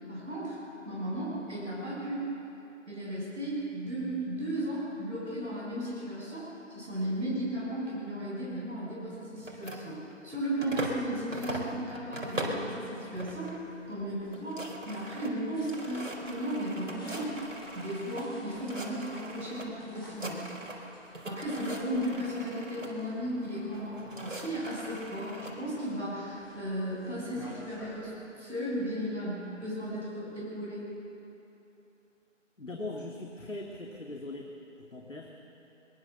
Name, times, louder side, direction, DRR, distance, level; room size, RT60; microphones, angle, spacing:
voice 1, 0.1-0.6 0.8-2.2 2.8-10.0 10.2-13.5 13.9-17.3 17.7-20.4 21.2-30.8, right 1 dB, ahead, -22 dB, 6.7 m, -35 dB
sound 1, 9.4-11.0 11.3-12.7 13.2-13.6 13.9-14.0 14.3-18.3 18.6-19.7 20.0-20.9 21.1-22.9 23.7-25.5, right 1 dB, 70° right, 4.6 m, -40 dB
sound 2, 13.5-28.0, equal, 15° left, 2.9 m, -54 dB
voice 2, 32.6-34.5 34.8-35.3, left 2 dB, 70° left, 0 dB, 2.6 m, -40 dB
22.5 x 22.5 x 6.9 m, 3.0 s
figure-of-eight pair, 180°, 39 cm